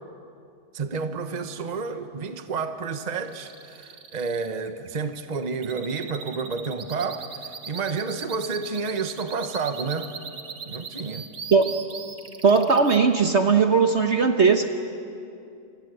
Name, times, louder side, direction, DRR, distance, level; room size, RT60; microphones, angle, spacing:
voice 1, 0.7-10.1 10.6-11.3, right 4 dB, 30° right, 8 dB, 1.1 m, -30 dB
sound 1, 3.2-13.0, right 5 dB, 70° right, 2.2 m, -39 dB
voice 2, 12.4-14.7, right 5 dB, 45° right, 6 dB, 1.2 m, -19 dB
28.5 x 24.5 x 8.2 m, 2.5 s
omnidirectional pair, 1.8 m